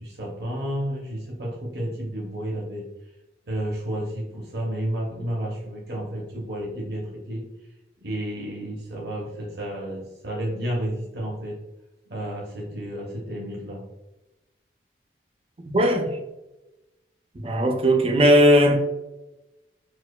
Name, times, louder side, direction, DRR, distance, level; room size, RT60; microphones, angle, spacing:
voice 1, 0.0-2.8 3.5-7.5 8.0-11.6 12.1-13.9, right 1 dB, 60° right, 0.7 m, -31 dB
voice 2, 15.7-16.2 17.3-18.8, equal, 30° right, 0.4 m, -18 dB
4.4 x 2.4 x 2.2 m
head